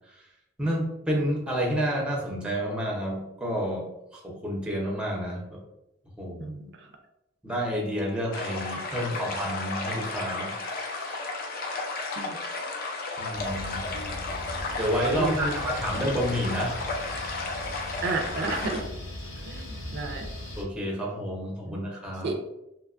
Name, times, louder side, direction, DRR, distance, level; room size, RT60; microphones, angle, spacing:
voice 1, 0.6-5.6 6.2-6.5 7.4-11.2 13.2-13.9 14.5-17.0 19.3-19.4 20.6-22.3, equal, 5° right, -2 dB, 0.5 m, -30 dB
voice 2, 6.4-6.9 9.1-9.2 12.2-12.4 13.9-14.1 15.1-15.6 18.0-18.9 19.5-20.3 21.7-21.8 22.2-22.3, right 3 dB, 60° right, 3 dB, 0.3 m, -32 dB
sound 1, 8.3-18.8, left 3 dB, 45° left, 0.4 m, -33 dB
sound 2, 13.3-20.6, left 1 dB, 85° left, 0.6 m, -39 dB
2.8 x 2.2 x 2.4 m, 0.88 s
head